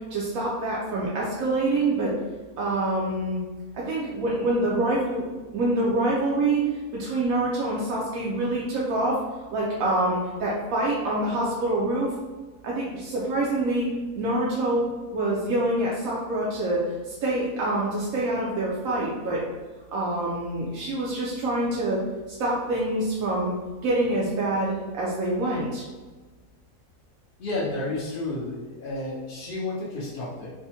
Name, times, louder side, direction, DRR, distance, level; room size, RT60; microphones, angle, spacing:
voice 1, 0.1-2.1 2.6-3.4 3.7-5.2 5.5-6.6 6.9-9.2 9.5-12.1 12.6-13.9 14.1-14.9 15.1-19.4 19.9-22.0 22.4-23.5 23.8-25.8, right 2 dB, 70° right, -5 dB, 0.9 m, -26 dB
voice 2, 27.4-30.5, left 2 dB, 55° left, -5 dB, 0.6 m, -31 dB
3.4 x 2.1 x 2.7 m, 1.3 s
omnidirectional pair, 1.7 m